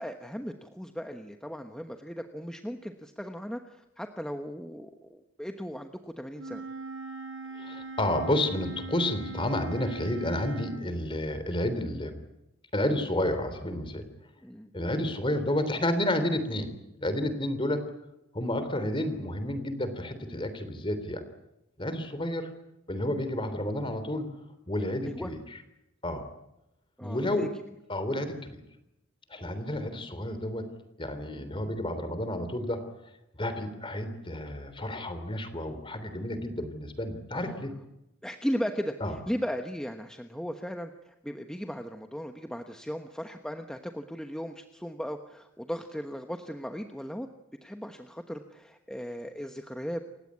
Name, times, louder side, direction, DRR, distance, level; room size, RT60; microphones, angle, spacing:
voice 1, 0.0-6.6 14.4-14.7 25.0-25.3 27.0-27.5 37.3-37.6 38.2-47.3 47.6-50.0, equal, 5° left, 5 dB, 1.1 m, -37 dB
Wind instrument woodwind instrument, 6.4-10.8, right 3 dB, 65° right, 4.6 m, -41 dB
voice 2, 7.6-12.2 12.7-14.0 14.7-16.7 17.0-17.8 18.3-21.2 21.8-22.5 22.9-24.3 24.7-25.4 26.0-26.3 27.0-27.5 27.9-28.6 29.3-30.7 31.0-32.8 33.4-37.7 39.0-39.2, left 1 dB, 25° left, 10 dB, 3.3 m, -30 dB
28.5 x 16.5 x 9.6 m, 0.89 s
head